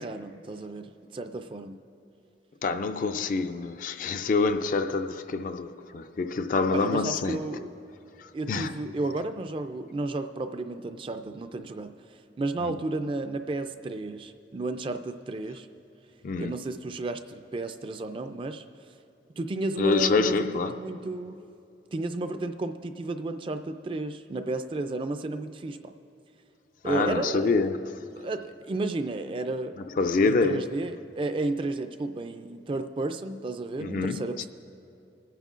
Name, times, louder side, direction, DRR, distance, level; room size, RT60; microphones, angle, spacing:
voice 1, 0.0-1.8 6.7-7.7 8.3-11.9 12.4-15.7 16.4-18.6 19.4-21.4 21.9-25.9 26.8-27.6 28.2-29.7 30.2-34.5, right 2 dB, 30° right, 0.3 m, -32 dB
voice 2, 2.6-7.5 8.5-8.7 12.6-12.8 16.2-16.6 19.8-20.7 26.8-27.9 30.0-30.7 33.8-34.5, left 4 dB, 45° left, 0.3 m, -26 dB
27.0 x 9.1 x 2.5 m
head